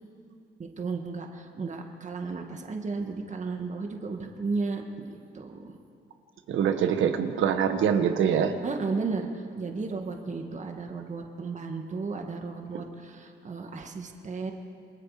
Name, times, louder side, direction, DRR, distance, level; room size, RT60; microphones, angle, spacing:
voice 1, 0.6-5.7 8.6-14.5, right 4 dB, 35° right, 3 dB, 2.0 m, -34 dB
voice 2, 6.5-8.5, right 8 dB, 80° right, 7 dB, 1.7 m, -24 dB
27.5 x 21.5 x 5.1 m, 2.5 s
cardioid pair, 90°, 20 cm